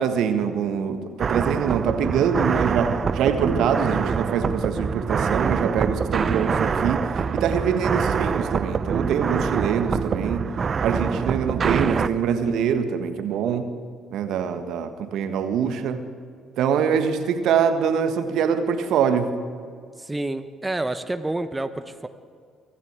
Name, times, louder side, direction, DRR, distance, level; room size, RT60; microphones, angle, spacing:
voice 1, 0.0-7.0 7.3-10.5 10.8-13.7 14.1-16.0 16.6-19.3, right 7 dB, 65° right, 9 dB, 1.6 m, -24 dB
sound 1, 1.2-12.1, right 6 dB, 45° right, 0.9 m, -25 dB
voice 2, 20.0-22.1, right 2 dB, 15° right, 10 dB, 1.2 m, -28 dB
24.5 x 14.5 x 8.3 m, 2.1 s
figure-of-eight pair, 45°, 0 cm